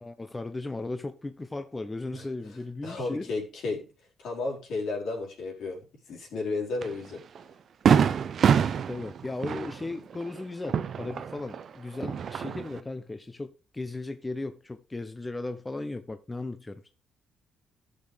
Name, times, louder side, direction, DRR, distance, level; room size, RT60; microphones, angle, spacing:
voice 1, 0.0-3.3 8.9-16.9, left 2 dB, 20° left, 0.8 m, -36 dB
voice 2, 2.8-3.8 4.2-7.2, left 3 dB, 75° left, 4.5 m, -33 dB
Fireworks, 6.8-6.9 7.4-7.5 7.9-11.6 11.9-12.8, right 7 dB, 55° right, 0.7 m, -25 dB
14.0 x 6.5 x 3.5 m
cardioid pair, 90°, 0 cm